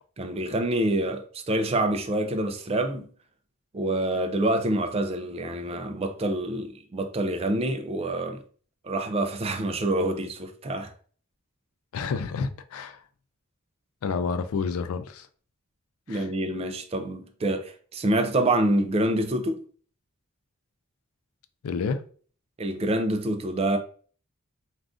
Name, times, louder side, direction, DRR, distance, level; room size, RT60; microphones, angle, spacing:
voice 1, 0.2-3.1 3.7-8.4 8.8-10.9 16.1-19.6 22.6-23.8, right 1 dB, 25° right, 0.3 m, -26 dB
voice 2, 11.9-13.0 14.0-15.3 16.1-16.3 21.6-22.0, left 5 dB, 75° left, 0.4 m, -29 dB
2.4 x 2.4 x 3.5 m
head